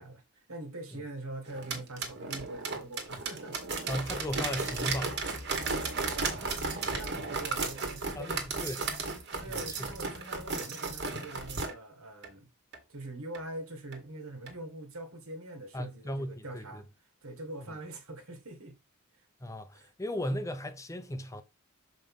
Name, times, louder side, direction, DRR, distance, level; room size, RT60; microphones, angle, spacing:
voice 1, 0.0-3.6 6.0-8.5 9.4-12.5 12.9-16.9 17.2-18.8 19.1-19.2 19.7-19.9, right 2 dB, 80° right, 1.9 m, -43 dB
sound 1, 1.5-11.7 12.2-12.3 12.7-12.8 13.3-13.4 13.9-14.0 14.5-14.6, right 4 dB, 50° right, 1.7 m, -34 dB
voice 2, 3.9-5.2 8.2-8.8 9.5-9.9 15.7-16.8 19.4-21.4, equal, 15° left, 0.7 m, -36 dB
6.6 x 5.1 x 3.7 m
head